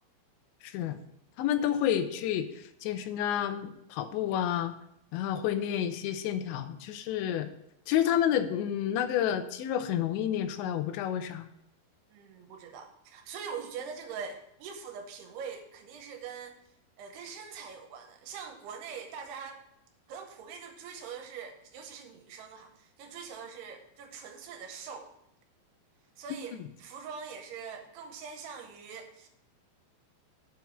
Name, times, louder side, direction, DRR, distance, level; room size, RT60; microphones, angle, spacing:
voice 1, 0.6-1.0 1.4-2.5 2.8-4.7 5.1-7.5 7.9-11.5, left 10 dB, 90° left, 9 dB, 2.9 m, -29 dB
voice 2, 12.1-16.6 17.0-19.6 20.1-25.1 26.2-29.3, right 6 dB, 75° right, 5 dB, 2.7 m, -43 dB
7.5 x 4.5 x 7.0 m, 0.78 s
omnidirectional pair, 5.0 m